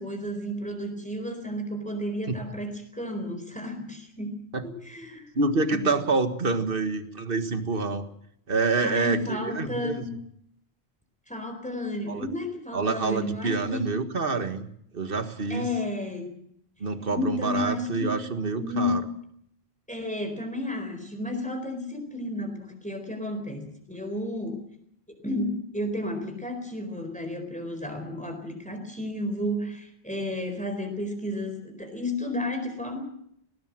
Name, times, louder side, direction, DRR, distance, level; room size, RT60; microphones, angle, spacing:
voice 1, 0.0-5.4 5.7-6.0 8.8-10.1 11.3-13.9 15.5-16.4 17.0-18.2 18.6-19.0 19.9-24.6 25.2-33.0, left 1 dB, 5° left, 5 dB, 4.3 m, -32 dB
voice 2, 5.4-8.0 8.5-10.1 12.1-12.3 12.7-14.7 14.9-15.7 16.8-19.0, right 3 dB, 55° right, 9 dB, 1.8 m, -27 dB
19.5 x 19.0 x 7.7 m, 0.69 s
omnidirectional pair, 1.1 m